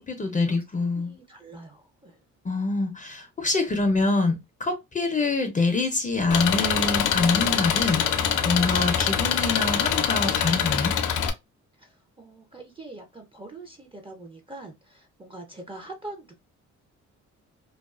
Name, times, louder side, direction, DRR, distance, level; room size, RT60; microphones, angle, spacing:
voice 1, 0.0-1.1 2.4-10.9, left 3 dB, 25° left, 0.5 m, -25 dB
voice 2, 1.0-2.2 11.8-16.3, right 2 dB, 15° right, 0.5 m, -43 dB
Engine, 6.3-11.3, left 8 dB, 80° left, 0.5 m, -24 dB
2.3 x 2.3 x 2.3 m
cardioid pair, 90°, 30 cm